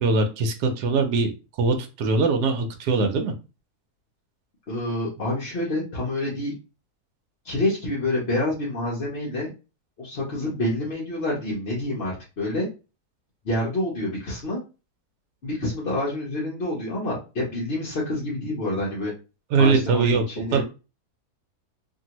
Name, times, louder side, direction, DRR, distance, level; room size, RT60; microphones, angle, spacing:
voice 1, 0.0-1.3 1.6-3.3 19.5-20.6, right 4 dB, 80° right, 4 dB, 1.1 m, -22 dB
voice 2, 4.7-6.5 7.4-9.5 10.0-12.7 13.4-14.6 15.4-19.1 19.6-20.6, left 1 dB, 45° left, -5 dB, 0.9 m, -27 dB
2.8 x 2.7 x 2.9 m, 0.30 s
omnidirectional pair, 1.7 m